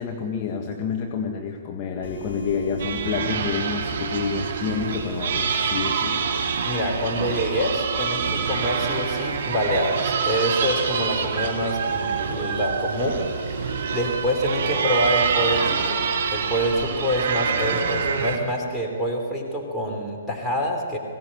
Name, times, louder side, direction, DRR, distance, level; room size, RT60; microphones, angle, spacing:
voice 1, 0.0-6.2, left 6 dB, 30° left, 2 dB, 1.5 m, -28 dB
sound 1, 2.0-16.9, right 2 dB, 60° left, 4.2 m, -36 dB
sound 2, 2.8-18.4, right 6 dB, 50° right, 3.0 m, -26 dB
voice 2, 6.6-13.2 13.9-16.0 16.3-21.0, equal, 5° left, -2 dB, 3.6 m, -26 dB
21.5 x 16.5 x 9.0 m, 2.3 s
figure-of-eight pair, 120°, 0 cm